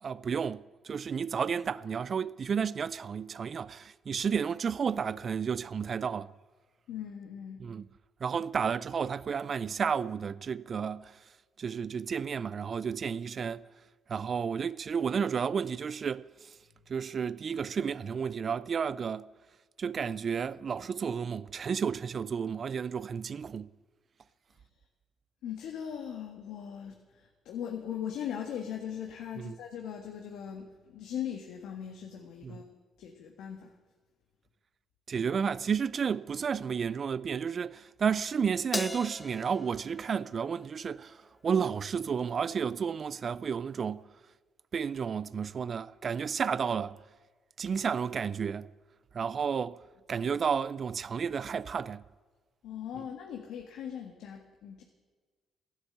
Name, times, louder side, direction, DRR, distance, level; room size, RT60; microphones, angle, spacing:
voice 1, 0.0-6.3 7.6-7.9 8.2-11.2 11.6-13.6 14.1-16.6 16.9-19.3 19.8-23.7 29.4-29.6 32.4-32.6 35.1-44.1 44.7-47.0 47.6-48.7 49.1-49.8 50.1-52.0 52.9-53.0, right 6 dB, 45° right, 0.4 m, -32 dB
voice 2, 6.9-7.6 25.4-32.6 33.0-33.7 52.6-54.8, left 9 dB, 85° left, 1.7 m, -39 dB
Crash cymbal, 38.7-41.3, left 2 dB, 20° left, 0.7 m, -40 dB
15.5 x 11.5 x 8.1 m
cardioid pair, 90°, 0 cm